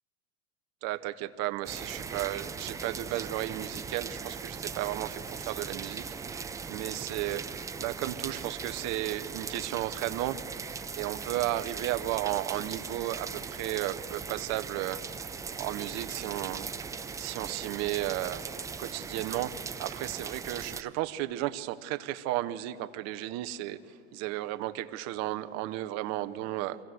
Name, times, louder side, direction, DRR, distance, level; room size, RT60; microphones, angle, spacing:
voice 1, 0.8-10.4 10.9-15.0 15.5-16.7 17.2-18.4 18.8-23.8 24.1-26.8, right 15 dB, 45° right, 12 dB, 0.9 m, -34 dB
sound 1, 1.6-20.8, right 5 dB, 10° right, 0.4 m, -39 dB
24.0 x 16.0 x 7.8 m, 3.0 s
hypercardioid pair, 110°, 38 cm